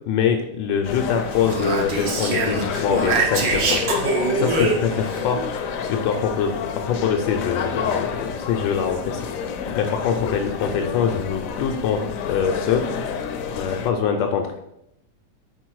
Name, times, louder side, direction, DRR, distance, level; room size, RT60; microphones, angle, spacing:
voice 1, 0.1-3.8 4.3-5.4 5.8-6.6 6.8-9.2 9.8-12.8 13.6-14.6, left 7 dB, 90° left, 3 dB, 1.3 m, -24 dB
sound 1, 0.8-13.9, left 6 dB, 70° left, 0.8 m, -29 dB
Speech, 1.3-5.2, right 3 dB, 80° right, 1.7 m, -24 dB
5.3 x 4.0 x 4.6 m, 0.81 s
omnidirectional pair, 1.9 m